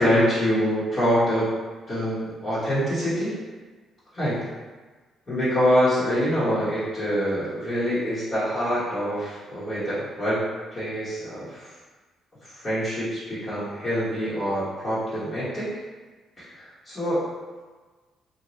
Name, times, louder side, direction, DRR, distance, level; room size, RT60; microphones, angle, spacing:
voice 1, 0.0-1.5 1.9-3.3 4.1-4.4 5.3-10.4 10.7-11.7 12.4-15.7 16.4-17.2, equal, 35° left, -12 dB, 1.1 m, -25 dB
2.7 x 2.3 x 3.0 m, 1.3 s
cardioid pair, 90°, 0 cm